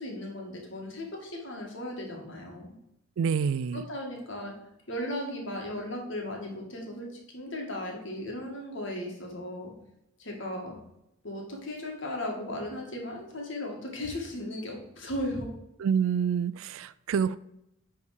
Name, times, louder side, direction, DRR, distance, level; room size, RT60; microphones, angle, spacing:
voice 1, 0.0-2.7 3.7-4.5 4.9-7.1 7.3-9.7 10.2-10.8 11.2-15.5, left 1 dB, 60° left, 0 dB, 1.8 m, -36 dB
voice 2, 3.2-3.8 15.8-17.4, right 7 dB, 75° right, 17 dB, 0.3 m, -27 dB
9.5 x 3.6 x 4.8 m, 0.84 s
head